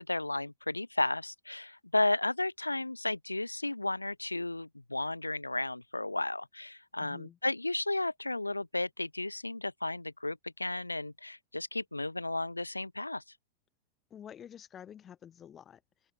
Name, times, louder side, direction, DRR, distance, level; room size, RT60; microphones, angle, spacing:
voice 1, 0.0-13.2, left 2 dB, 85° left, 0.4 m, -33 dB
voice 2, 7.0-7.4 14.1-16.1, left 9 dB, 25° left, 7.4 m, -50 dB
open air
figure-of-eight pair, 90°, 0 cm